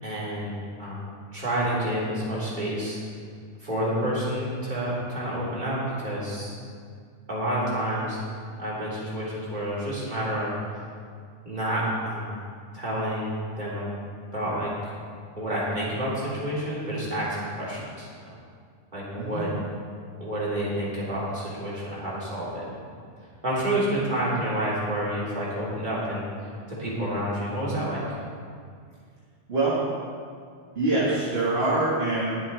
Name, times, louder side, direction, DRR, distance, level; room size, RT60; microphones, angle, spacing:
voice 1, 0.0-3.0 3.6-6.5 7.3-8.2 8.6-10.5 11.4-12.4 12.7-13.9 14.3-14.7 15.4-18.3 18.9-19.5 20.2-22.6 23.4-26.3 26.7-28.0, right 1 dB, 40° right, -8 dB, 3.6 m, -29 dB
voice 2, 30.8-32.5, right 2 dB, 55° right, -7 dB, 2.0 m, -25 dB
21.0 x 7.8 x 3.5 m, 2.1 s
omnidirectional pair, 1.2 m